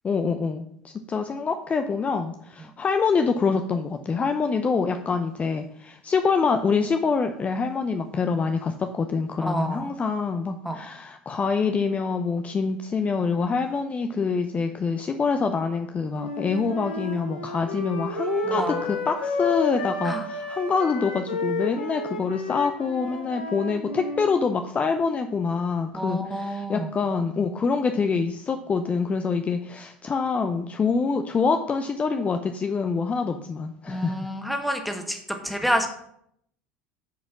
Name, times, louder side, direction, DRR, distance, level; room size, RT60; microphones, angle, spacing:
voice 1, 0.0-34.2, left 5 dB, 25° left, 7 dB, 0.7 m, -25 dB
voice 2, 9.4-9.9 10.6-10.8 18.4-18.9 20.0-20.2 25.9-26.9 33.9-35.9, equal, ahead, 4 dB, 1.6 m, -28 dB
Wind instrument woodwind instrument, 16.1-24.3, left 2 dB, 75° left, 1.7 m, -31 dB
9.3 x 5.2 x 6.0 m, 0.72 s
figure-of-eight pair, 70°, 5 cm